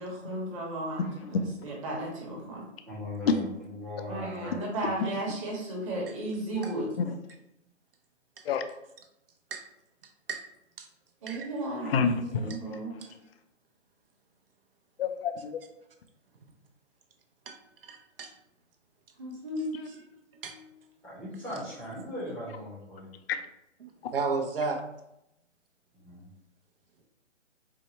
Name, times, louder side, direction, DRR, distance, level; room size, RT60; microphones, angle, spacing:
voice 1, 0.0-2.6 4.1-6.9 11.2-12.9 19.2-19.9 20.3-20.4, right 1 dB, 25° right, -3 dB, 1.1 m, -35 dB
voice 2, 1.0-1.7 3.3-3.4 5.0-5.2 6.6-6.7 7.0-7.2 8.4-8.6 11.8-13.2 15.0-15.6 19.7-19.9 23.3-23.5, left 5 dB, 55° left, 8 dB, 0.4 m, -30 dB
voice 3, 2.8-4.5 21.0-23.1 25.9-26.3, left 1 dB, 5° left, -7 dB, 0.7 m, -39 dB
voice 4, 17.8-18.3 20.4-20.5 24.1-24.8, right 4 dB, 50° right, 4 dB, 0.7 m, -32 dB
4.6 x 2.1 x 4.1 m, 0.83 s
hypercardioid pair, 155°, 37 cm